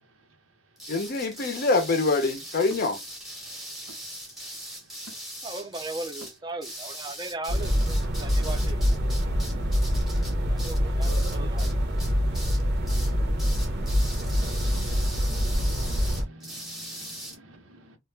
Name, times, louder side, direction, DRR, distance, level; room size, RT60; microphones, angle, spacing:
sound 1, 0.8-11.7 12.0-12.6 12.9-13.1 13.4-17.4, right 1 dB, ahead, 0.7 m, -40 dB
voice 1, 0.9-3.0, left 3 dB, 50° left, 0.5 m, -25 dB
voice 2, 5.4-8.8 10.4-11.7, right 2 dB, 20° right, 0.4 m, -37 dB
sound 2, 7.5-16.2, equal, 55° right, 0.7 m, -25 dB
voice 3, 11.0-11.7 13.4-13.5 14.6-14.7 15.0-15.4 15.7-18.0, right 2 dB, 90° right, 0.8 m, -47 dB
2.3 x 2.1 x 3.1 m
head